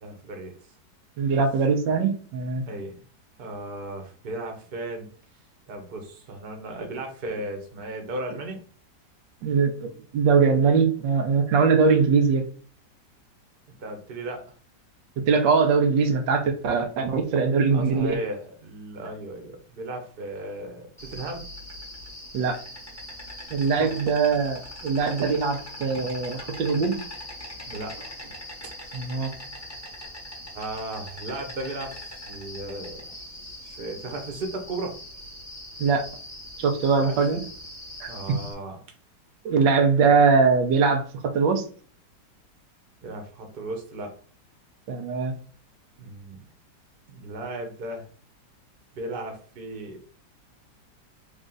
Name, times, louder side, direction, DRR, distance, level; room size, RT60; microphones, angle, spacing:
voice 1, 0.0-0.5 2.7-3.0 3.4-5.1 5.7-8.6 13.8-14.4 17.7-21.5 23.7-24.4 27.7-28.3 28.8-28.9 30.5-33.2 33.6-35.0 37.0-37.2 38.1-38.8 43.0-44.1 46.0-46.4 47.1-48.0 48.9-50.0, right 2 dB, 40° right, 3 dB, 0.9 m, -35 dB
voice 2, 1.2-2.6 9.4-12.5 15.3-18.2 22.3-22.6 23.5-27.0 28.9-29.3 35.8-36.1 36.6-37.4 38.0-38.1 39.4-41.6 44.9-45.3, right 5 dB, 90° right, 6 dB, 1.4 m, -22 dB
Insect, 21.0-38.5, left 1 dB, 15° left, 0.7 m, -41 dB
3.6 x 2.5 x 3.7 m, 0.43 s
omnidirectional pair, 1.9 m